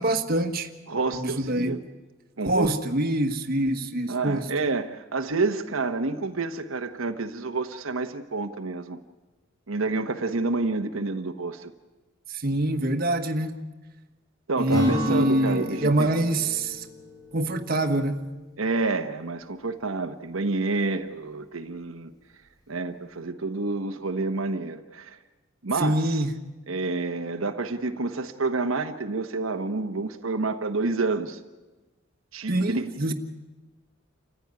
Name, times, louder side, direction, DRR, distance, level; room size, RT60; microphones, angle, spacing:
voice 1, 0.0-0.7 1.1-1.8 2.4-4.5 12.4-13.5 14.6-16.8 17.3-18.2 25.8-26.3 32.5-33.1, right 1 dB, 45° right, 1.4 m, -25 dB
voice 2, 0.9-1.8 2.4-2.8 4.1-9.0 9.7-11.7 14.5-16.1 18.6-22.1 22.7-25.2 25.6-26.2 26.7-31.4 32.3-33.1, right 3 dB, 80° right, 1.1 m, -29 dB
Acoustic guitar / Strum, 14.7-18.3, left 1 dB, 20° left, 5.1 m, -34 dB
28.0 x 15.0 x 9.6 m
head